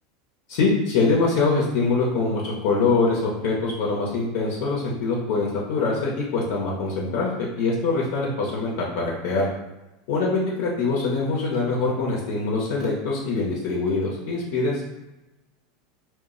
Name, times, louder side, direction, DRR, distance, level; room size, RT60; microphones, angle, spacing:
voice 1, 0.5-9.5 10.1-14.8, left 3 dB, 70° left, -3 dB, 0.6 m, -24 dB
2.2 x 2.0 x 3.7 m, 1.0 s
supercardioid pair, 115°, 0 cm